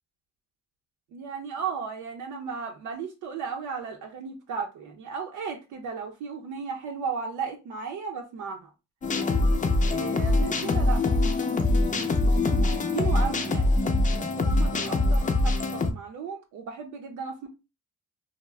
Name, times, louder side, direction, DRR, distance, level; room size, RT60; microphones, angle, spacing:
voice 1, 1.1-8.7 9.8-13.7 14.1-17.5, right 6 dB, 85° right, 3 dB, 0.6 m, -35 dB
sound 1, 9.0-15.9, left 2 dB, 25° left, 0.5 m, -23 dB
2.4 x 2.0 x 3.2 m, 0.27 s
cardioid pair, 90°, 30 cm